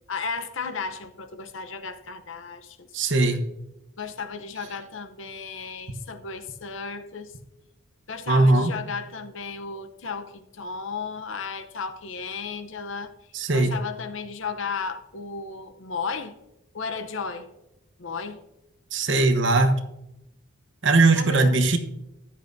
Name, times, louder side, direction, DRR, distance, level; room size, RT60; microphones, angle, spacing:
voice 1, 0.1-3.4 4.0-7.3 8.1-13.1 13.5-16.4 16.7-17.5 18.0-18.4 21.2-21.6, left 5 dB, 65° left, 10 dB, 0.8 m, -34 dB
voice 2, 2.9-3.4 8.3-8.7 13.3-13.8 18.9-19.8 20.8-21.8, right 2 dB, 60° right, 6 dB, 1.0 m, -19 dB
14.0 x 10.0 x 2.7 m, 0.88 s
head